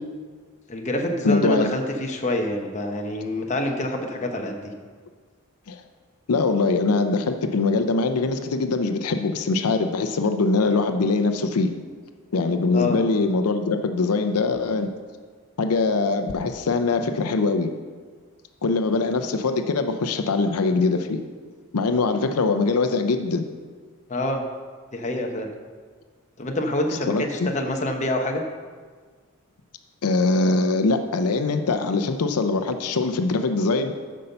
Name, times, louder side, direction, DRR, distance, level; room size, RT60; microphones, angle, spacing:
voice 1, 0.7-4.7 12.7-13.0 24.1-24.4 24.9-25.5 26.4-28.4, left 1 dB, 30° left, 2 dB, 0.9 m, -26 dB
voice 2, 1.2-1.7 5.7-5.8 6.3-11.7 12.3-14.9 15.6-17.7 18.6-21.2 21.7-23.4 27.1-27.5 30.0-33.9, left 3 dB, 85° left, 7 dB, 0.6 m, -22 dB
8.4 x 5.4 x 6.7 m, 1.6 s
head